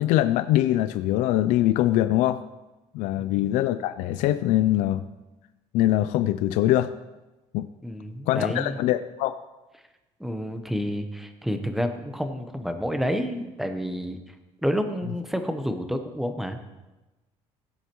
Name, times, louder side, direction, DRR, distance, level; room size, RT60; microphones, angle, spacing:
voice 1, 0.0-2.4 2.9-5.1 5.7-6.9 7.5-7.7 8.3-9.3, left 14 dB, 85° left, 11 dB, 0.4 m, -23 dB
voice 2, 7.8-8.8 10.2-14.2 14.6-16.6, equal, ahead, 7 dB, 0.9 m, -29 dB
16.0 x 8.1 x 3.0 m, 1.1 s
cardioid pair, 130°, 12 cm